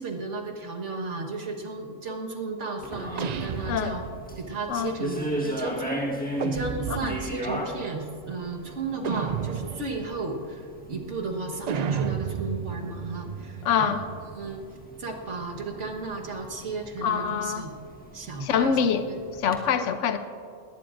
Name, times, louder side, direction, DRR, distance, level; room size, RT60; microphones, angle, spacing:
voice 1, 0.0-4.1 4.4-6.2 6.5-14.0 14.4-14.6 15.0-17.7 18.1-18.8 19.0-19.2, right 3 dB, 70° right, 1 dB, 1.7 m, -34 dB
sound 1, 2.8-19.6, equal, 5° left, 1.3 m, -38 dB
sound 2, 3.2-4.5 6.4-7.5 9.0-10.1 11.7-14.4, right 7 dB, 90° right, 0.3 m, -32 dB
voice 2, 13.6-14.0 17.0-17.6 18.4-19.1 19.4-20.2, left 7 dB, 75° left, 9 dB, 1.0 m, -25 dB
20.0 x 18.5 x 2.6 m, 2.4 s
omnidirectional pair, 1.3 m